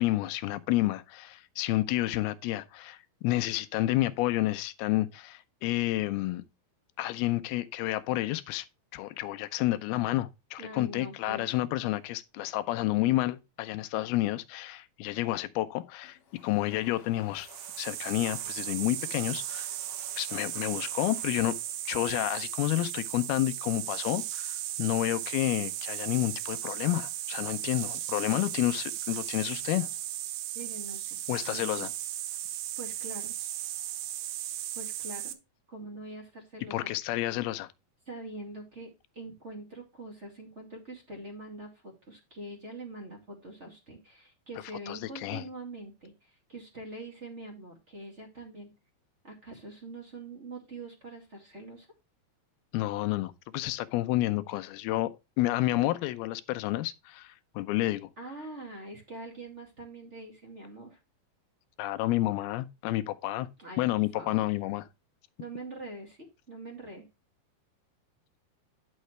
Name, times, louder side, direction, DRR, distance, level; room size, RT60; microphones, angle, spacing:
voice 1, 0.0-6.4 7.0-8.7 8.9-17.5 17.8-19.7 20.2-21.6 21.9-29.9 31.3-31.9 36.7-37.7 44.9-45.4 52.7-58.1 61.8-63.5 63.8-64.8, left 16 dB, 85° left, 2.6 m, -30 dB
voice 2, 10.6-11.5 12.4-12.5 30.5-31.2 31.5-31.9 32.8-33.3 34.7-35.3 35.7-36.9 38.1-48.7 49.2-51.9 58.2-61.0 63.6-63.8 64.1-64.5 65.4-67.1, right 2 dB, 25° right, 1.9 m, -44 dB
Domestic sounds home sounds, 16.0-22.9, left 6 dB, 55° left, 1.7 m, -56 dB
sound 1, 17.4-35.3, right 13 dB, 85° right, 2.9 m, -36 dB
10.5 x 6.6 x 3.2 m
omnidirectional pair, 4.5 m